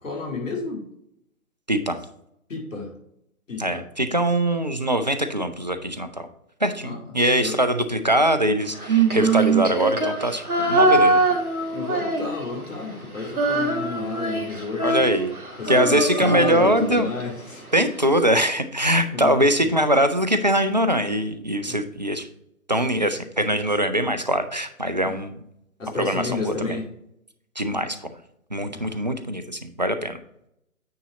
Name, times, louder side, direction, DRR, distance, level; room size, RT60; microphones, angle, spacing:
voice 1, 0.0-0.8 2.5-2.9 3.5-3.8 6.8-7.0 7.4-7.6 11.7-14.9 15.6-17.6 19.1-19.5 21.6-21.8 23.6-23.7 25.0-25.2 25.8-26.9 28.5-29.0, left 4 dB, 60° left, -1 dB, 2.3 m, -31 dB
voice 2, 1.7-2.0 3.6-6.3 6.6-11.2 14.8-15.3 15.7-17.1 17.7-22.3 22.7-25.4 26.0-26.8 27.6-28.0 28.5-30.2, right 1 dB, 35° right, 9 dB, 0.4 m, -22 dB
Female singing, 8.8-12.7 12.9-17.2, right 3 dB, 85° right, 1.6 m, -23 dB
9.3 x 4.0 x 3.9 m, 0.77 s
figure-of-eight pair, 135°, 43 cm